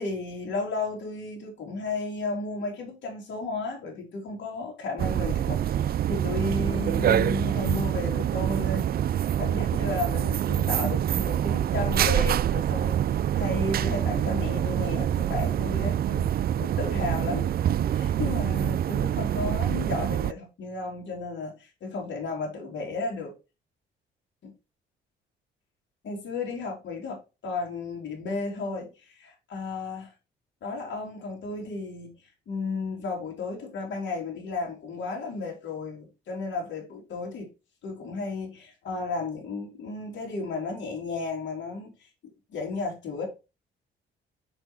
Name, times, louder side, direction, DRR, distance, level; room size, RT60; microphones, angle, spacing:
voice 1, 0.0-23.4 24.4-24.5 26.0-27.2 27.4-30.1 30.6-32.1 32.5-37.5 37.8-42.1 42.5-43.3, left 3 dB, 65° left, 3.4 m, -33 dB
sound 1, 5.0-20.3, right 10 dB, 50° right, 0.4 m, -26 dB
6.4 x 6.1 x 4.5 m
cardioid pair, 90°, 20 cm